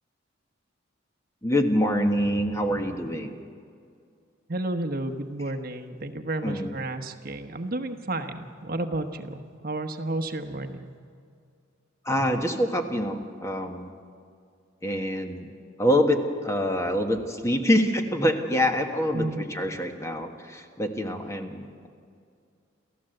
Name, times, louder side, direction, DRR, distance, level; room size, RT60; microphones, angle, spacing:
voice 1, 1.4-3.3 6.4-6.7 12.0-13.9 14.8-15.5 15.8-21.9, equal, 15° left, 4 dB, 1.4 m, -25 dB
voice 2, 4.5-10.9 19.1-19.4, right 2 dB, 50° right, 7 dB, 1.1 m, -32 dB
29.5 x 14.0 x 7.8 m, 2.3 s
head